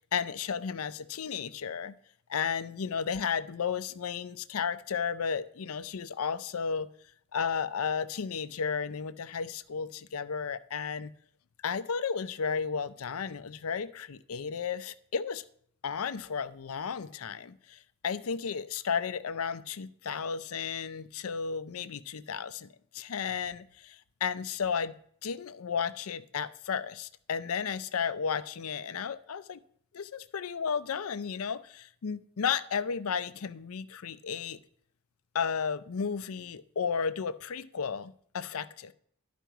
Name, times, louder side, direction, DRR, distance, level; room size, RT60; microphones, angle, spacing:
voice 1, 0.0-1.9 2.3-6.9 7.3-11.1 11.6-15.4 15.8-24.9 25.2-29.6 29.9-34.6 35.3-38.9, left 6 dB, 75° left, 13 dB, 0.5 m, -33 dB
11.5 x 5.1 x 4.6 m, 0.63 s
head